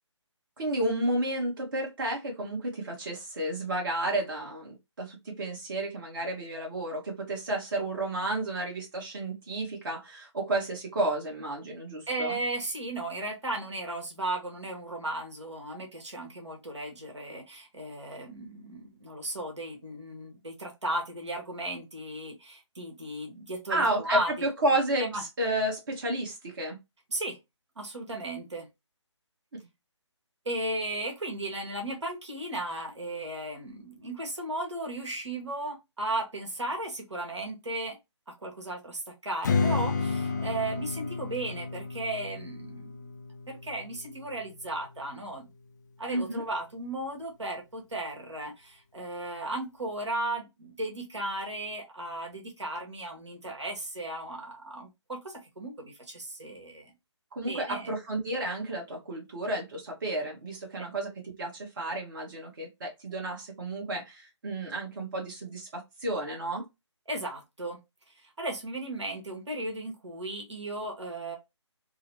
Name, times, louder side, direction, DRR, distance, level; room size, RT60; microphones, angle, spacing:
voice 1, 0.6-12.4 23.7-26.8 46.1-46.5 57.3-66.7, right 1 dB, 45° right, 1.2 m, -31 dB
voice 2, 12.1-24.5 25.0-25.2 27.1-27.4 27.8-28.7 30.4-38.0 38.4-42.9 43.5-45.5 46.0-56.9 57.5-57.9 60.8-60.9 67.1-67.8 68.2-71.4, right 2 dB, 70° right, 1.3 m, -35 dB
Strum, 39.4-44.7, left 4 dB, 40° left, 0.5 m, -32 dB
3.8 x 2.0 x 2.8 m
figure-of-eight pair, 145°, 16 cm